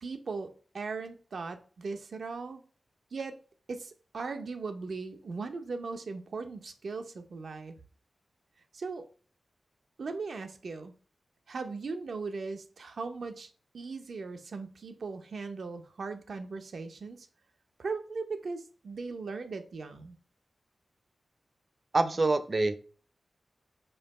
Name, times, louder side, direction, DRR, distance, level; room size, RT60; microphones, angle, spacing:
voice 1, 0.0-0.5 0.7-2.6 3.1-3.3 3.7-7.8 8.7-9.0 10.0-10.9 11.5-17.3 17.8-20.2, right 4 dB, 75° right, 0.8 m, -38 dB
voice 2, 21.9-22.8, right 2 dB, 40° right, 0.6 m, -25 dB
5.6 x 4.5 x 4.2 m
wide cardioid pair, 135°, 0 cm